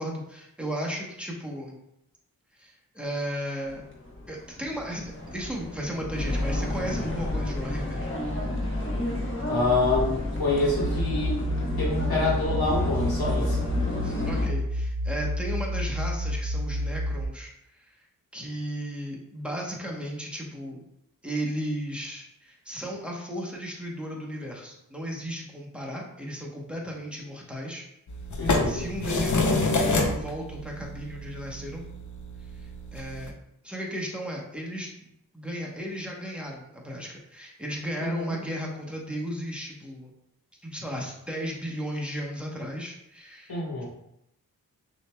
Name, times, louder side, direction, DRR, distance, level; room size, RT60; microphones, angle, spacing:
voice 1, 0.0-1.8 2.6-3.8 4.3-8.1 14.0-18.0 18.3-20.8 21.2-27.9 28.6-31.8 32.5-33.3 33.6-40.1 40.6-43.8, equal, 5° right, -2 dB, 1.0 m, -35 dB
sound 1, 3.6-14.5, left 1 dB, 35° left, 1.1 m, -31 dB
voice 2, 9.5-11.4 11.8-13.6 28.4-28.9 38.0-38.3 43.5-43.9, left 2 dB, 85° left, -5 dB, 1.5 m, -27 dB
sound 2, 10.8-17.3, equal, 75° right, 0.6 m, -29 dB
sound 3, 28.1-33.3, left 2 dB, 55° left, 0.7 m, -28 dB
6.2 x 3.0 x 2.3 m, 0.80 s
wide cardioid pair, 80°, 36 cm